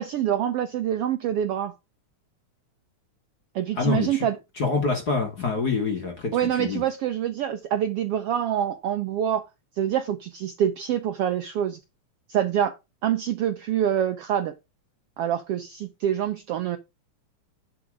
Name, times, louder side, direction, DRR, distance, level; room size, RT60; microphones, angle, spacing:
voice 1, 0.0-1.7 3.5-4.3 6.3-9.5 9.8-11.8 12.3-12.8 13.0-14.5 15.2-16.8, right 10 dB, 75° right, 1.4 m, -26 dB
voice 2, 3.7-6.9, left 4 dB, 40° left, 1.6 m, -26 dB
11.0 x 5.0 x 4.8 m
omnidirectional pair, 3.5 m